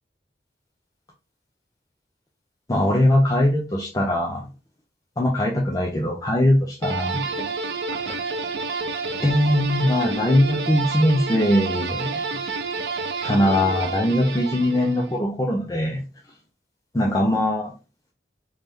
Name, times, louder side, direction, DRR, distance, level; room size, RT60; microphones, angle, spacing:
voice 1, 2.7-4.5 5.2-7.5 8.0-8.2 9.2-12.1 13.2-16.0 16.9-17.7, left 1 dB, 20° left, -2 dB, 0.5 m, -21 dB
sound 1, 6.8-15.2, right 4 dB, 80° right, 0.5 m, -29 dB
3.2 x 2.7 x 3.5 m, 0.31 s
head